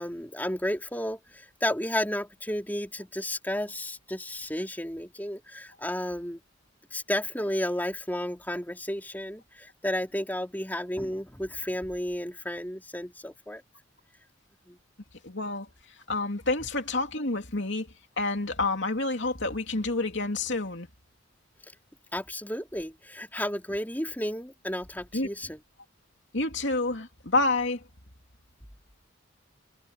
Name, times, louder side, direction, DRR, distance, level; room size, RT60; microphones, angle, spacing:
voice 1, 0.0-6.4 6.9-13.6 14.7-14.8 22.1-25.6, left 1 dB, 10° left, 3.7 m, -32 dB
voice 2, 15.2-15.7 16.1-17.9 18.2-20.9 25.1-25.3 26.3-27.8, left 2 dB, 55° left, 3.2 m, -28 dB
head